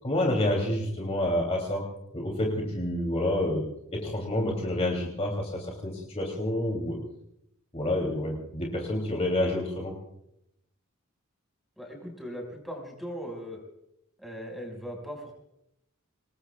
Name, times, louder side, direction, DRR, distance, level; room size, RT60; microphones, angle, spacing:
voice 1, 0.0-1.8 2.1-3.6 3.9-7.0 7.7-9.9, left 1 dB, 30° left, 0 dB, 3.0 m, -28 dB
voice 2, 11.8-13.6 14.2-15.3, equal, ahead, 1 dB, 5.6 m, -39 dB
26.5 x 20.5 x 2.4 m, 0.79 s
head